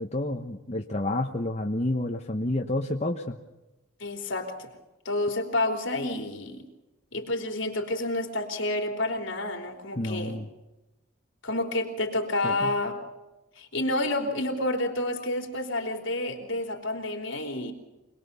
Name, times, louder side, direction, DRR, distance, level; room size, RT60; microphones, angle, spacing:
voice 1, 0.0-3.4 10.0-10.5 12.4-12.7, left 1 dB, 30° left, 2 dB, 1.1 m, -29 dB
voice 2, 4.0-4.7 5.1-6.6 7.1-10.4 11.4-13.0 13.6-17.7, left 2 dB, 60° left, 3 dB, 3.6 m, -29 dB
26.5 x 20.5 x 6.9 m, 1.0 s
head